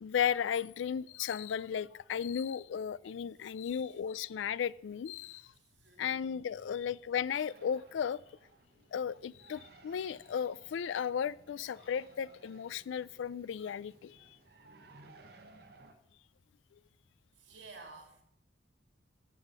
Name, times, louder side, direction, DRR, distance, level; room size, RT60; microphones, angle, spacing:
voice 1, 0.0-5.4 6.0-8.2 8.9-14.3, left 8 dB, 90° left, 0.3 m, -35 dB
voice 2, 3.4-3.8 5.2-6.2 6.6-6.9 17.4-18.2, right 3 dB, 80° right, 3.0 m, -55 dB
sound 1, 7.5-15.9, right 2 dB, 60° right, 1.1 m, -60 dB
12.0 x 7.3 x 5.4 m
head